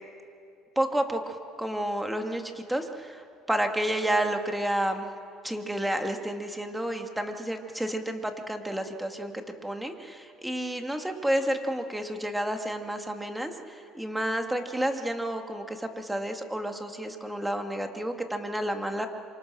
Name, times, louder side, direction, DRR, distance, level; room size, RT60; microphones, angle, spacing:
voice 1, 0.8-5.1 5.4-9.3 9.6-19.1, right 1 dB, 5° right, 5 dB, 2.5 m, -30 dB
27.5 x 24.5 x 6.3 m, 2.5 s
supercardioid pair, 75°, 0 cm